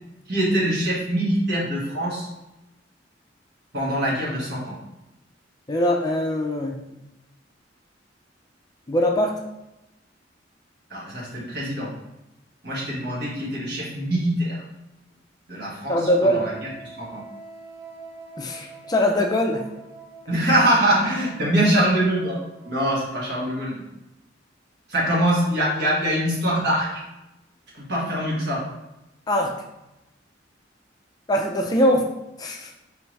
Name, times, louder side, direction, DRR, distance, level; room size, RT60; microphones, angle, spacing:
voice 1, 0.3-2.3 3.7-4.8 10.9-11.9 12.6-14.6 15.5-16.5 17.0-17.2 20.3-22.4 22.7-23.8 24.9-26.9 27.9-28.6, right 1 dB, 60° right, -5 dB, 1.6 m, -23 dB
voice 2, 5.7-6.8 8.9-9.4 15.9-16.5 18.4-19.7 29.3-29.5 31.3-32.1 32.4-32.7, equal, 20° left, 1 dB, 0.4 m, -22 dB
Wind instrument woodwind instrument, 16.1-23.4, right 3 dB, 35° right, 1.5 m, -45 dB
4.7 x 3.4 x 3.1 m, 0.95 s
head